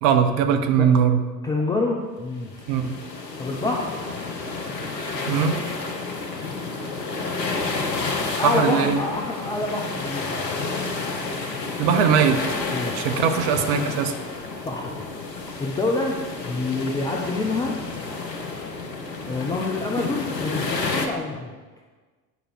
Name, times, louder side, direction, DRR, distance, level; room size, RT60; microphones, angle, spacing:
voice 1, 0.0-1.2 2.7-2.9 5.3-5.6 8.4-9.0 11.8-12.4 12.9-14.1, right 7 dB, 50° right, 7 dB, 0.9 m, -20 dB
voice 2, 1.4-2.5 3.4-3.9 8.4-10.5 12.7-13.2 14.6-15.1 15.6-17.7 19.2-21.5, left 3 dB, 10° left, -1 dB, 0.3 m, -27 dB
sound 1, 2.5-21.1, left 3 dB, 85° left, 0.9 m, -30 dB
9.4 x 4.9 x 4.6 m, 1.4 s
figure-of-eight pair, 70°, 48 cm